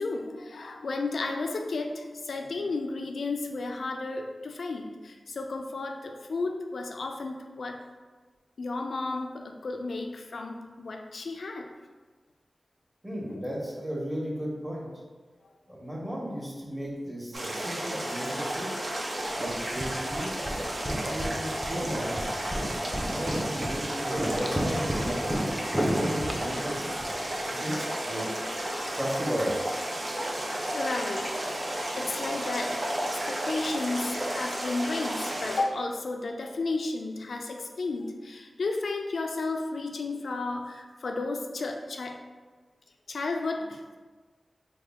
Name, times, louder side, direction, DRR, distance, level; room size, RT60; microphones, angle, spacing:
voice 1, 0.0-7.8 8.6-11.7 13.3-13.4 30.7-31.4 31.9-32.8 33.0-42.2 43.1-44.0, left 3 dB, 85° left, 4 dB, 0.3 m, -33 dB
voice 2, 13.0-14.9 15.7-18.7 19.4-20.5 21.0-22.6 22.9-25.4 25.8-26.9 27.5-28.3 28.9-29.6, equal, 20° right, -4 dB, 1.2 m, -34 dB
sound 1, 17.3-35.6, right 1 dB, 60° right, 0.6 m, -32 dB
sound 2, 19.3-27.5, equal, ahead, 0.5 m, -34 dB
3.5 x 2.1 x 3.5 m, 1.4 s
cardioid pair, 45°, 0 cm